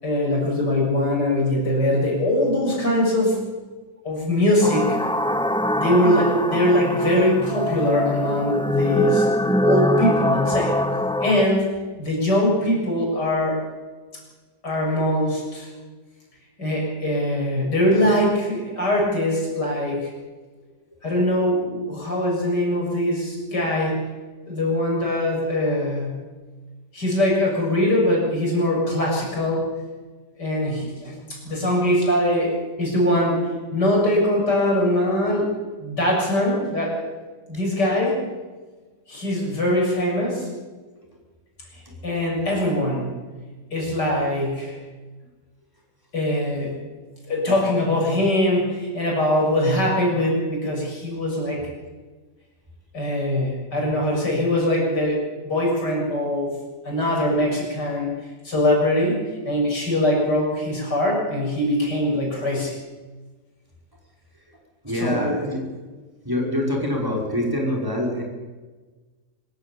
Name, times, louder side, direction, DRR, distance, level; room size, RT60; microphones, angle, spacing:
voice 1, 0.0-3.4 4.0-5.0 5.8-9.3 9.6-10.7 11.2-11.7 12.0-13.6 14.6-15.7 16.6-20.1 21.0-23.9 24.5-26.2 26.9-29.7 30.4-33.4 33.7-35.5 35.8-37.1 37.5-38.2 39.1-40.5 42.0-43.2 43.7-44.8 46.1-46.8 47.3-51.7 52.9-56.5 56.8-58.1 58.4-62.7 65.0-65.3, left 1 dB, 75° left, -2 dB, 7.5 m, -22 dB
sound 1, 4.6-11.4, left 1 dB, 5° left, 0.5 m, -23 dB
voice 2, 64.8-65.7 66.2-68.2, left 1 dB, 10° right, -1 dB, 5.6 m, -25 dB
25.0 x 14.5 x 8.6 m, 1.3 s
omnidirectional pair, 1.8 m